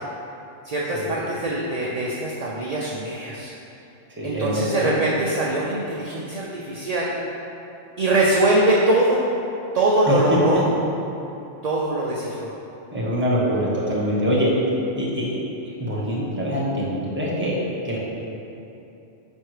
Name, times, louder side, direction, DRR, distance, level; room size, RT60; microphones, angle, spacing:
voice 1, 0.6-3.5 4.2-7.1 8.0-9.2 9.7-10.6 11.6-12.5, right 2 dB, 45° right, -5 dB, 0.5 m, -22 dB
voice 2, 4.2-4.9 10.1-10.6 12.9-14.5 14.9-15.4 15.6-17.6 17.8-18.0, equal, 10° right, -6 dB, 1.0 m, -24 dB
5.3 x 4.5 x 4.8 m, 2.8 s
omnidirectional pair, 1.3 m